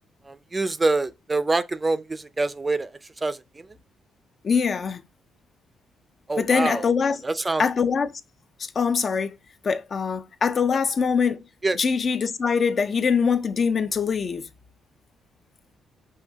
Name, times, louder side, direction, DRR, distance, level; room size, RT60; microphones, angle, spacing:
voice 1, 0.3-3.7 6.3-6.9 7.2-7.6 11.6-11.8, right 3 dB, 20° right, 0.4 m, -26 dB
voice 2, 4.4-5.0 6.4-7.2 7.6-8.1 8.8-9.3 9.6-11.4 11.7-14.4, left 6 dB, 45° left, 0.4 m, -23 dB
5.5 x 2.7 x 3.4 m
cardioid pair, 90°, 0 cm